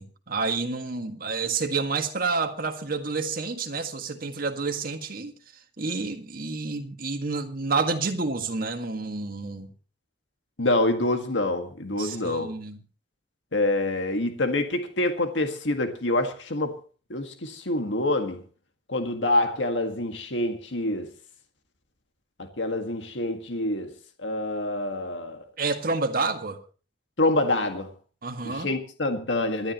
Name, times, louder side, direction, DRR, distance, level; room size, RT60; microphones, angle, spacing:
voice 1, 0.0-5.3 5.8-9.7 12.0-12.8 25.6-26.6 28.2-28.7, right 4 dB, 50° right, 1.8 m, -29 dB
voice 2, 10.6-12.5 13.5-16.8 17.1-18.4 18.9-21.1 22.4-23.9 24.2-25.5 27.2-27.9 28.4-29.7, left 2 dB, 80° left, 1.8 m, -26 dB
27.0 x 11.5 x 3.0 m
head